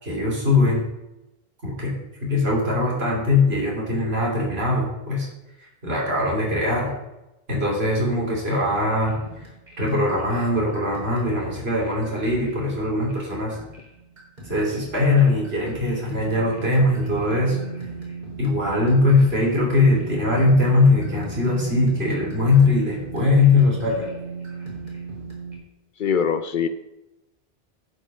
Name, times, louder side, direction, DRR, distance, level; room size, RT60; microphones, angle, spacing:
voice 1, 0.0-0.8 1.6-5.3 5.6-6.9 7.5-9.2 9.8-13.6 14.4-17.6 18.4-24.1, left 2 dB, 80° right, -3 dB, 3.5 m, -21 dB
sound 1, 9.0-25.6, right 3 dB, 45° right, 3.0 m, -38 dB
voice 2, 26.0-26.7, left 7 dB, 60° left, 11 dB, 0.7 m, -22 dB
10.5 x 5.4 x 5.3 m, 0.94 s
omnidirectional pair, 1.1 m